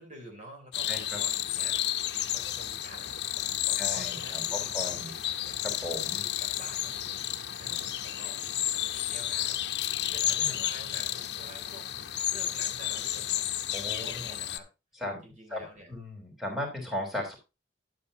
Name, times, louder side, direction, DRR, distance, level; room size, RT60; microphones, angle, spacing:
voice 1, 0.0-5.6 6.2-7.2 7.6-9.7 10.0-14.7 15.2-15.9, right 1 dB, 45° right, 2 dB, 3.6 m, -49 dB
sound 1, 0.7-14.6, left 12 dB, 70° left, 0.7 m, -32 dB
voice 2, 0.9-1.2 3.8-5.1 5.6-6.2 10.4-10.6 13.7-14.3 15.0-15.2 15.5-17.3, left 1 dB, ahead, 0 dB, 3.7 m, -37 dB
11.5 x 8.5 x 2.7 m, 0.26 s
head